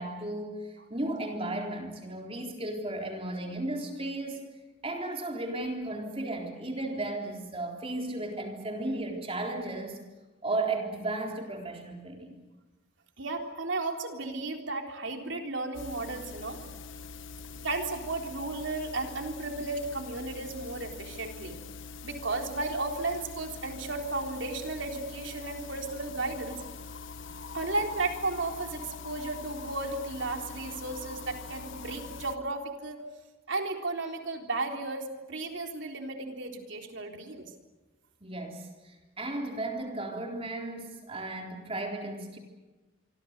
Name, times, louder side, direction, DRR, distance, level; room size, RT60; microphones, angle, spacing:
voice 1, 0.0-4.5 4.8-10.0 10.4-12.4 38.2-42.4, right 2 dB, 30° right, 2 dB, 3.7 m, -35 dB
voice 2, 13.2-16.6 17.6-21.6 22.0-26.6 27.5-33.0 33.5-37.5, right 2 dB, 65° right, 3 dB, 3.7 m, -34 dB
sound 1, 15.7-32.4, left 4 dB, 65° left, 1.0 m, -44 dB
27.0 x 24.5 x 6.7 m, 1.2 s
head